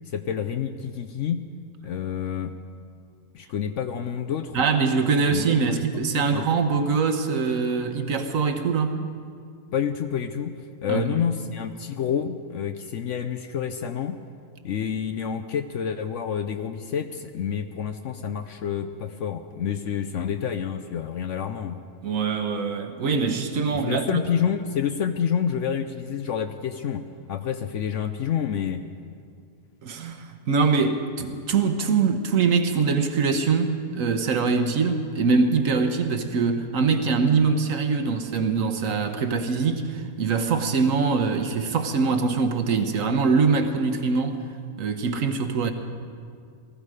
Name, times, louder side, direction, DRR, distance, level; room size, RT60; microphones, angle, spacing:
voice 1, 0.1-1.4 1.8-2.5 3.3-4.7 5.2-5.8 6.1-6.5 9.7-10.5 10.8-14.2 14.6-21.8 23.7-28.8, left 8 dB, 65° left, 9 dB, 0.8 m, -28 dB
voice 2, 4.5-9.0 10.9-11.2 22.0-24.2 29.8-44.4 44.8-45.7, right 5 dB, 65° right, 7 dB, 1.3 m, -23 dB
19.0 x 14.0 x 4.9 m, 2.2 s
omnidirectional pair, 1.6 m